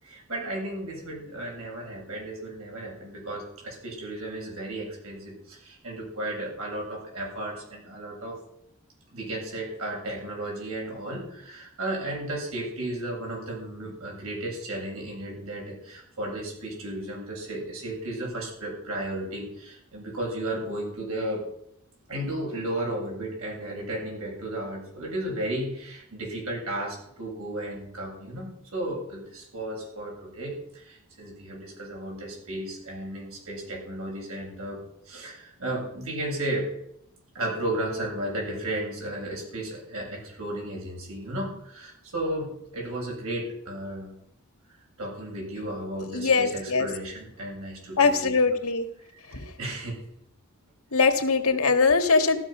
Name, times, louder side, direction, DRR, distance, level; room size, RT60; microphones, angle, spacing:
voice 1, 0.0-8.4 9.1-21.4 22.1-36.7 37.3-44.2 45.0-48.3 49.1-50.0, right 1 dB, 75° right, -1 dB, 7.8 m, -34 dB
voice 2, 46.1-46.9 48.0-48.9 49.3-49.4 50.9-52.4, left 4 dB, 80° left, 7 dB, 1.9 m, -21 dB
15.5 x 13.0 x 6.2 m, 0.75 s
head